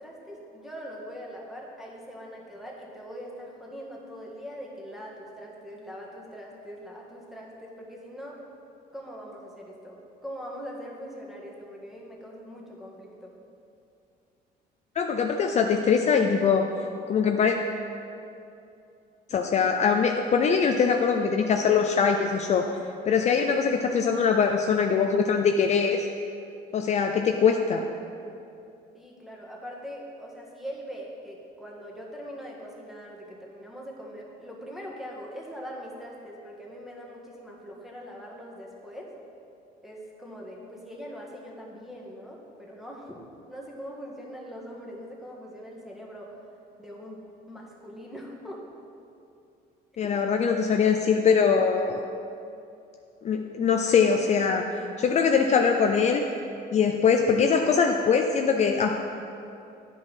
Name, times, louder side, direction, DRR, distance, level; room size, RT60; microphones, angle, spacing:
voice 1, 0.0-8.4 8.9-13.3 28.9-39.1 39.8-43.2 43.5-46.4 46.8-48.6 50.0-50.1, equal, ahead, -3 dB, 1.7 m, -42 dB
voice 2, 15.0-16.7 17.1-17.6 19.3-22.7 23.1-26.1 26.7-27.8 50.0-52.0 53.2-54.6 55.0-56.3 56.7-59.0, left 6 dB, 40° left, 4 dB, 0.5 m, -22 dB
10.5 x 5.3 x 5.4 m, 2.6 s
cardioid pair, 110°, 17 cm